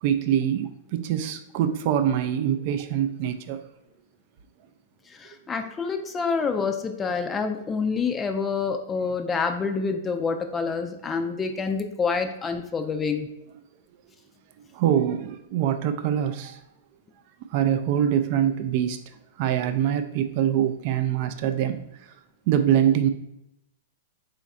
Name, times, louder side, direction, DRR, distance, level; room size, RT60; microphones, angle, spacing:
voice 1, 0.0-3.6 6.0-6.1 14.7-16.6 17.5-19.0 19.4-21.8 22.5-23.1, right 10 dB, 50° right, 8 dB, 0.3 m, -24 dB
voice 2, 5.1-13.3, left 5 dB, 20° left, 5 dB, 0.4 m, -27 dB
4.0 x 2.4 x 4.1 m, 0.85 s
hypercardioid pair, 115°, 0 cm